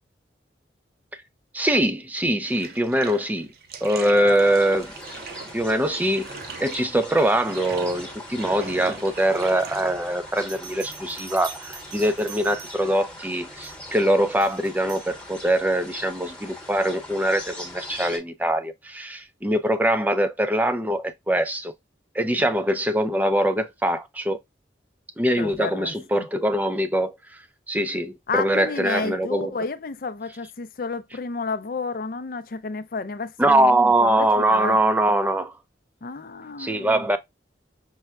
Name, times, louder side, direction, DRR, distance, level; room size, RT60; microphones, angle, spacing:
voice 1, 1.5-3.5 3.8-4.9 5.5-6.3 6.6-21.7 22.1-24.4 25.2-27.1 27.7-29.5 33.4-35.5 36.6-37.2, right 1 dB, 10° right, 0.4 m, -23 dB
Bathtub (filling or washing), 2.4-14.1, right 4 dB, 55° right, 0.6 m, -42 dB
sound 1, 4.4-18.2, left 1 dB, 5° left, 1.1 m, -41 dB
Bell, 10.4-13.1 13.6-13.9 14.4-15.1, right 6 dB, 80° right, 1.0 m, -43 dB
voice 2, 25.4-26.3 28.3-34.8 36.0-37.1, left 4 dB, 50° left, 0.5 m, -31 dB
5.5 x 2.2 x 2.4 m
head